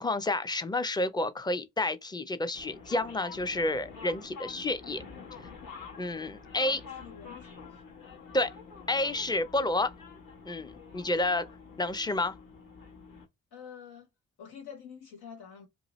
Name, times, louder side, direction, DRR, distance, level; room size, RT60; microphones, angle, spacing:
voice 1, 0.0-5.0 6.0-6.8 8.3-8.5 8.9-9.9 10.5-11.5 11.8-12.3, left 2 dB, 10° left, 0.5 m, -30 dB
sound 1, 2.5-13.3, left 5 dB, 65° left, 1.2 m, -47 dB
voice 2, 6.6-7.7 13.5-14.1 14.4-15.7, left 7 dB, 85° left, 1.1 m, -47 dB
2.8 x 2.6 x 3.0 m
supercardioid pair, 45°, 38 cm